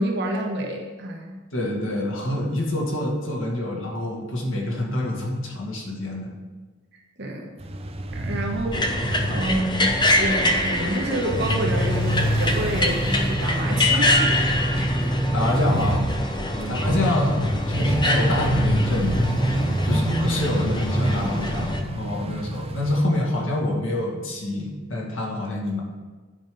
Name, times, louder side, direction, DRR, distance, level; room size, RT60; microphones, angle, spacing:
voice 1, 0.0-1.4 6.9-7.5 8.1-14.4 16.6-16.8 19.9-20.2, right 1 dB, 60° right, 0 dB, 1.2 m, -29 dB
voice 2, 1.5-6.3 15.3-16.1 16.7-19.3 19.8-25.8, left 1 dB, 85° left, -2 dB, 2.0 m, -26 dB
sound 1, 7.6-23.0, right 1 dB, 30° right, 0.7 m, -26 dB
sound 2, 8.7-21.8, left 1 dB, 25° left, 0.8 m, -26 dB
9.6 x 5.4 x 5.3 m, 1.3 s
head